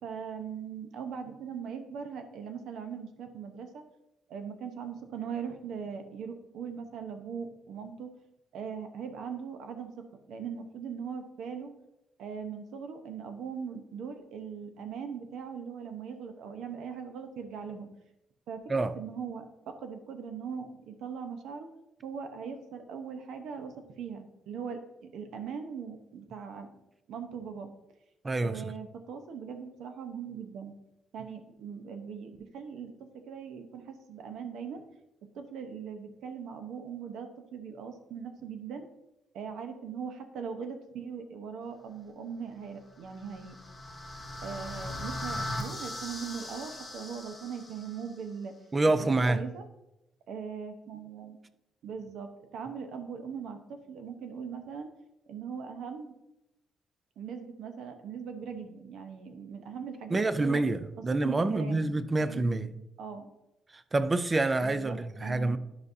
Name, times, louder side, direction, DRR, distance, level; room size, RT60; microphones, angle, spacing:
voice 1, 0.0-3.8 4.3-8.1 8.5-11.7 12.2-17.9 18.5-21.7 22.0-26.7 27.1-27.7 28.4-30.7 31.1-34.8 35.3-38.8 39.3-43.6 44.4-48.5 49.0-49.6 50.3-51.4 51.8-54.9 55.3-56.1 57.2-60.6 61.2-61.9 62.2-62.7 63.0-63.3 64.6-65.6, right 6 dB, 70° right, 0.8 m, -40 dB
voice 2, 28.2-28.7 48.7-49.4 60.1-62.7 63.7-65.6, right 2 dB, 15° right, 0.3 m, -27 dB
sound 1, 43.0-48.1, left 1 dB, 5° left, 1.2 m, -39 dB
11.0 x 5.2 x 2.7 m
cardioid pair, 170°, 0 cm